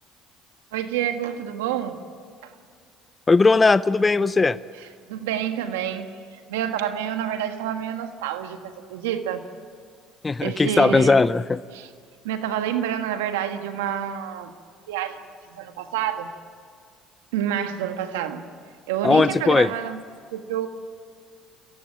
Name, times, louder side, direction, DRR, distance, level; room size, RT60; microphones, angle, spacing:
voice 1, 0.7-2.0 2.4-2.5 5.1-9.5 10.4-11.2 11.7-11.9 12.2-14.5 14.9-15.2 15.5-16.3 17.3-18.5 18.9-20.0 20.3-20.7, right 10 dB, 90° right, 8 dB, 1.5 m, -28 dB
voice 2, 3.3-4.6 10.2-11.6 19.0-19.7, left 3 dB, 25° left, 16 dB, 0.5 m, -18 dB
29.0 x 15.0 x 9.0 m, 2.2 s
supercardioid pair, 80°, 0 cm